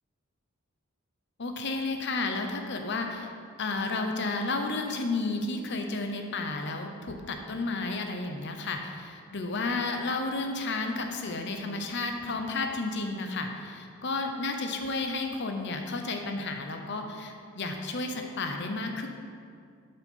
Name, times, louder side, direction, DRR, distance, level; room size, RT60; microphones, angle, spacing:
voice 1, 1.4-3.3 3.6-19.1, left 3 dB, 55° left, 4 dB, 0.8 m, -32 dB
7.9 x 5.6 x 5.5 m, 2.3 s
head